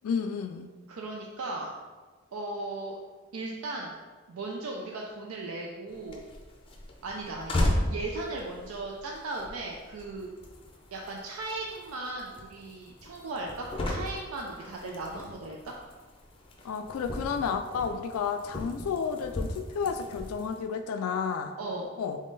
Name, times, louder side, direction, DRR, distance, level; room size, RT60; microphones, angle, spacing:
voice 1, 0.0-0.7 16.6-21.5 22.0-22.2, left 6 dB, 85° left, 7 dB, 0.3 m, -31 dB
voice 2, 0.9-1.7 2.3-3.0 3.3-4.0 4.3-6.2 7.0-10.3 10.9-15.8 21.6-21.9, right 2 dB, 90° right, -1 dB, 0.5 m, -37 dB
sound 1, 5.9-20.6, left 1 dB, 25° left, 0.5 m, -36 dB
3.7 x 3.6 x 3.9 m, 1.4 s
head